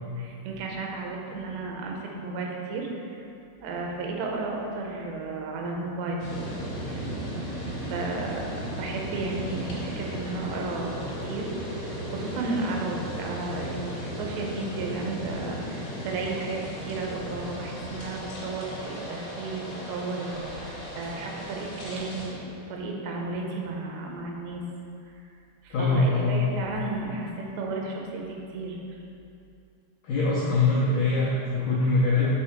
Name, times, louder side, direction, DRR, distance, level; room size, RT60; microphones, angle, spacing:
voice 1, 0.2-3.3 3.6-6.3 6.9-7.3 7.8-24.6 25.6-28.8, right 3 dB, 90° right, 0 dB, 3.0 m, -33 dB
sound 1, 6.2-22.3, equal, 70° left, 1.4 m, -36 dB
voice 2, 25.7-26.5 30.0-32.3, left 3 dB, 85° left, -7 dB, 1.8 m, -23 dB
7.5 x 3.6 x 4.5 m, 2.6 s
omnidirectional pair, 4.8 m